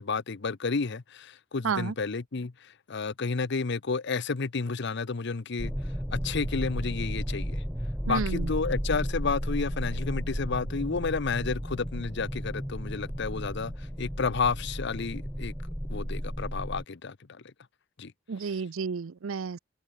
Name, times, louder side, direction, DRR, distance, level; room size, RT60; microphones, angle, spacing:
voice 1, 0.0-5.7 6.1-7.6 8.0-15.5 15.9-17.4 18.0-18.1, left 4 dB, 60° left, 0.7 m, -31 dB
voice 2, 1.6-1.9 8.1-8.5 18.3-19.6, right 5 dB, 85° right, 0.5 m, -31 dB
sound 1, 5.6-16.8, equal, ahead, 1.8 m, -33 dB
head